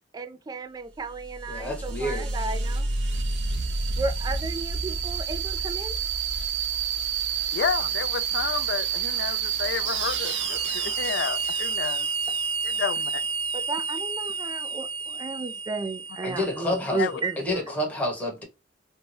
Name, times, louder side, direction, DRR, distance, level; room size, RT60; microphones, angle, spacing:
voice 1, 0.1-2.9 4.0-6.0 13.5-17.6, right 3 dB, 20° right, 0.3 m, -33 dB
sound 1, 1.1-17.4, right 5 dB, 75° right, 0.5 m, -29 dB
voice 2, 1.5-2.3 16.2-17.1 17.4-18.4, left 1 dB, 10° left, 1.0 m, -29 dB
voice 3, 7.5-12.1 12.6-13.2 17.0-17.1, left 7 dB, 65° left, 0.3 m, -31 dB
2.6 x 2.2 x 3.1 m
head